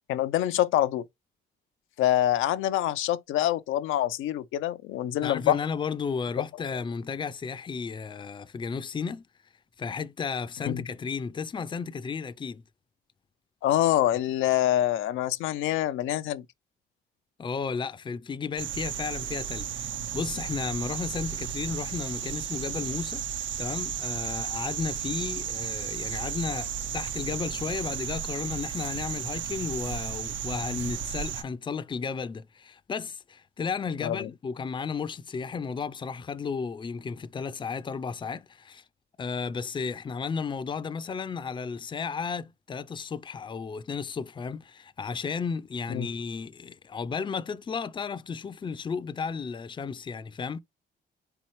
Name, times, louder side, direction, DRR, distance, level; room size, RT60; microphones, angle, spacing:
voice 1, 0.1-1.0 2.0-5.6 10.7-10.8 13.6-16.4 34.0-34.3 45.9-46.1, left 12 dB, 85° left, 0.5 m, -25 dB
voice 2, 5.2-9.2 9.8-12.6 17.4-38.8 39.2-50.6, left 5 dB, 25° left, 0.5 m, -33 dB
sound 1, 18.6-31.4, right 9 dB, 70° right, 0.7 m, -34 dB
4.4 x 3.9 x 3.0 m
cardioid pair, 90°, 20 cm